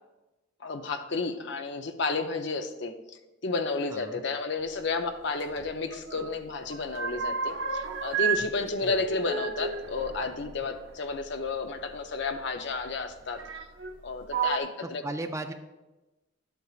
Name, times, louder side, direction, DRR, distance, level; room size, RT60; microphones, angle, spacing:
voice 1, 0.6-13.6 14.0-15.0, left 3 dB, 60° left, 7 dB, 0.6 m, -32 dB
sound 1, 5.4-6.3 6.6-8.4 8.7-11.2 12.3-12.4 13.4-13.9 14.3-14.6, right 6 dB, 65° right, 0.6 m, -32 dB
voice 2, 14.8-15.5, right 2 dB, 15° right, 6 dB, 0.4 m, -36 dB
12.0 x 8.0 x 2.4 m, 1.1 s
head